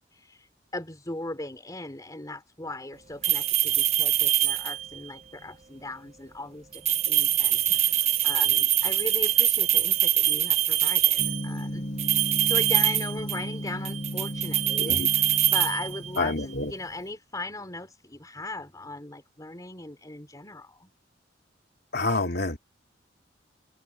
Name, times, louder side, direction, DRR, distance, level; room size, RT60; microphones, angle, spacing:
voice 1, 0.0-11.9 12.5-20.9, left 2 dB, 20° left, 3.3 m, -38 dB
sound 1, 3.2-5.0 6.7-11.5 12.0-13.6 13.9-16.3, right 12 dB, 35° right, 0.6 m, -24 dB
Gong, 11.2-17.1, equal, 40° left, 7.8 m, -35 dB
voice 2, 14.8-15.1 16.2-16.7 21.9-22.6, left 3 dB, 60° left, 3.1 m, -27 dB
open air
head